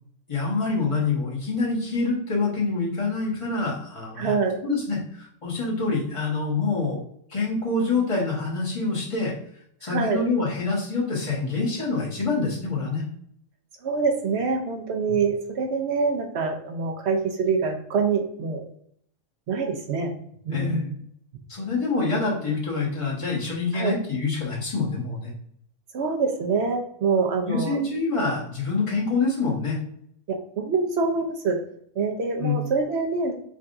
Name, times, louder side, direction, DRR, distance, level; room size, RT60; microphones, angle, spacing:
voice 1, 0.3-4.4 4.6-7.0 7.3-9.3 9.8-13.0 20.5-20.9 21.5-25.3 27.5-29.8 32.4-32.6, left 3 dB, 25° left, -5 dB, 1.2 m, -26 dB
voice 2, 4.2-4.6 9.8-10.2 13.8-18.6 19.5-20.1 20.5-20.9 23.7-23.9 25.9-27.8 30.3-31.6 32.0-33.3, right 4 dB, 65° right, 3 dB, 0.8 m, -25 dB
5.1 x 2.5 x 2.5 m, 0.66 s
omnidirectional pair, 1.3 m